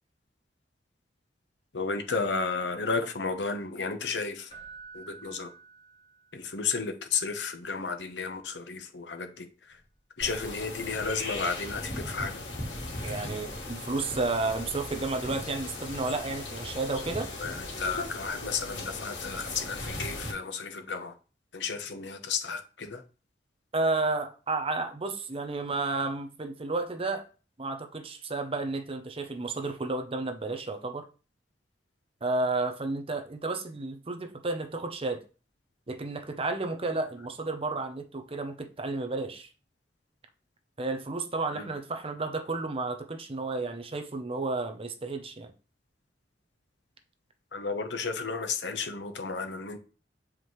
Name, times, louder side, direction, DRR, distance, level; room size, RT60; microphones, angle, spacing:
voice 1, 1.7-4.5 4.9-5.5 6.3-9.8 10.2-12.4 17.4-21.1 21.5-23.0 41.5-41.7 47.5-49.8, left 4 dB, 70° left, 0.9 m, -33 dB
Keyboard (musical), 4.5-6.5 9.7-9.9, right 5 dB, 30° left, 2.2 m, -49 dB
sound 1, 10.2-20.3, left 2 dB, 85° left, 2.5 m, -38 dB
voice 2, 13.0-17.3 23.7-27.2 27.6-31.1 32.2-35.2 35.9-39.5 40.8-45.5, right 3 dB, 30° right, 0.7 m, -32 dB
7.5 x 4.8 x 3.2 m
head